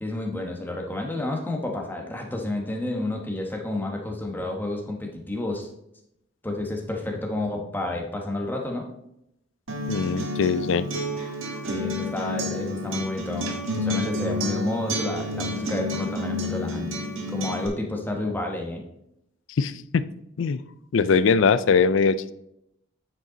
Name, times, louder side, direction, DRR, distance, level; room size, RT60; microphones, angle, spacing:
voice 1, 0.0-5.7 6.4-8.9 11.7-17.0 17.3-18.8, left 2 dB, 10° left, 1 dB, 1.1 m, -30 dB
Acoustic guitar, 9.7-17.7, left 1 dB, 85° right, 1.5 m, -30 dB
voice 2, 9.9-10.9 19.6-20.0 20.4-20.6 20.9-22.3, left 5 dB, 70° left, 15 dB, 0.4 m, -21 dB
9.1 x 5.3 x 3.8 m, 0.80 s
head